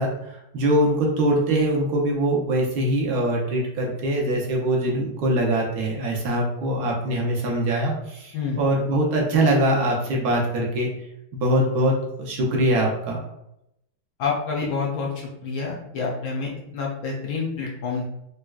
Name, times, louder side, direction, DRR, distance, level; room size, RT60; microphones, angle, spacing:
voice 1, 0.0-10.9 11.3-13.2, right 1 dB, 70° right, -1 dB, 1.0 m, -23 dB
voice 2, 14.2-15.1 15.4-18.0, left 4 dB, 80° left, -2 dB, 0.8 m, -28 dB
4.0 x 2.1 x 2.3 m, 0.81 s
omnidirectional pair, 2.1 m